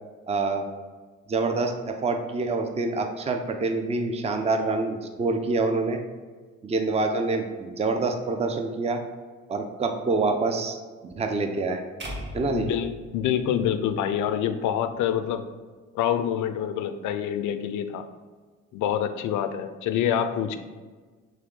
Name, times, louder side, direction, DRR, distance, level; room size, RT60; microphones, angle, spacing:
voice 1, 0.3-0.6 1.3-6.0 6.6-9.0 9.5-10.8 11.0-11.8 12.3-12.7, right 3 dB, 20° right, 5 dB, 0.5 m, -26 dB
sound 1, 12.0-14.3, equal, 35° right, 1.0 m, -39 dB
voice 2, 12.5-15.4 15.9-18.1 18.7-20.6, left 9 dB, 65° left, 10 dB, 0.4 m, -26 dB
3.5 x 3.1 x 3.7 m, 1.4 s
hypercardioid pair, 55°, 33 cm